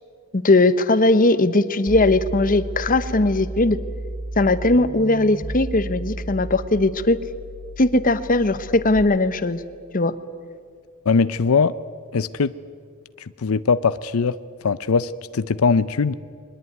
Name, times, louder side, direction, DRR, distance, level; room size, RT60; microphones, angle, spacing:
voice 1, 0.3-3.8 4.4-7.2 7.8-9.6 9.9-10.1, left 2 dB, 40° left, 13 dB, 1.0 m, -19 dB
sound 1, 1.9-9.0, right 1 dB, 25° right, 2.0 m, -33 dB
voice 2, 11.1-11.7 12.1-12.5 13.2-14.3 14.6-16.2, left 5 dB, 85° left, 15 dB, 0.6 m, -20 dB
22.5 x 20.5 x 9.4 m, 2.1 s
head